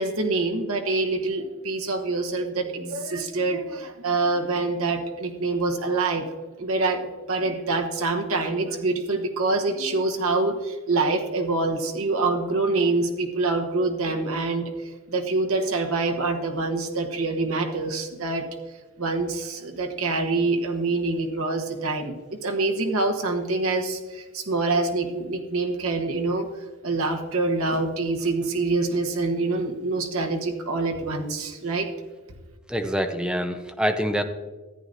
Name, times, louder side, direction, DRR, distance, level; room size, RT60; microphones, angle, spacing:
voice 1, 0.0-6.2 6.6-14.7 15.1-18.4 19.0-22.1 22.4-26.5 26.8-31.9, right 3 dB, 75° right, 2 dB, 1.1 m, -25 dB
voice 2, 32.7-34.2, equal, 5° right, 6 dB, 0.6 m, -25 dB
14.0 x 9.1 x 2.6 m, 1.3 s
head